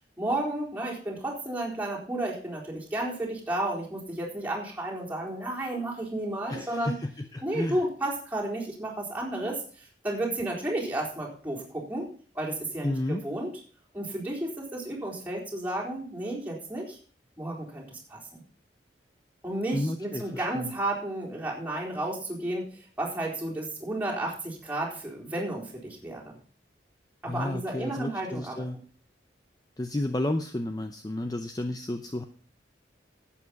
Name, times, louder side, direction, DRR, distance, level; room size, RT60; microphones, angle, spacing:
voice 1, 0.2-6.9 7.4-13.5 13.9-17.0 17.4-18.4 19.4-26.4 27.2-28.5, right 1 dB, 10° right, -4 dB, 4.1 m, -32 dB
voice 2, 6.5-7.8 12.8-13.2 19.7-20.7 27.2-28.8 29.8-32.2, left 1 dB, 20° left, 7 dB, 0.6 m, -32 dB
11.5 x 8.7 x 5.3 m, 0.42 s
head